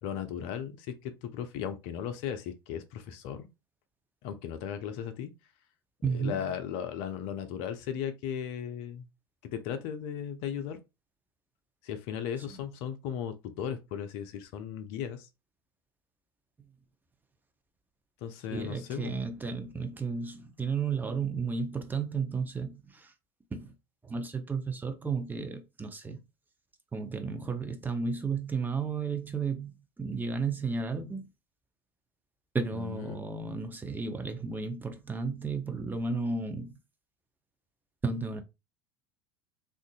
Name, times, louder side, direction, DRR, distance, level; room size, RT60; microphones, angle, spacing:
voice 1, 0.0-3.5 4.2-5.3 6.1-9.1 9.4-10.8 11.8-15.3 18.2-19.2 32.7-33.2, left 8 dB, 50° left, 0.5 m, -36 dB
voice 2, 6.0-6.4 18.5-23.1 23.5-23.7 24.0-26.2 26.9-31.3 32.5-36.8 38.0-38.4, right 4 dB, 15° right, 0.7 m, -33 dB
3.7 x 2.5 x 2.3 m
figure-of-eight pair, 80°, 13 cm